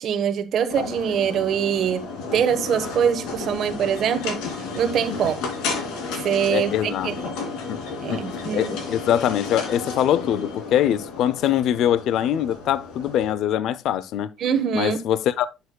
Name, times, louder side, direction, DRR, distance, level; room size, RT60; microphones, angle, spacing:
voice 1, 0.0-4.4 4.7-5.3 6.2-7.1 8.0-8.8 14.4-15.0, right 8 dB, 50° right, 1.1 m, -23 dB
sound 1, 0.7-13.3, left 4 dB, 85° left, 2.7 m, -33 dB
voice 2, 6.5-7.1 7.7-7.8 8.1-8.2 8.5-14.3 14.7-15.5, left 10 dB, 60° left, 0.5 m, -23 dB
11.0 x 6.7 x 2.3 m
cardioid pair, 150°, 0 cm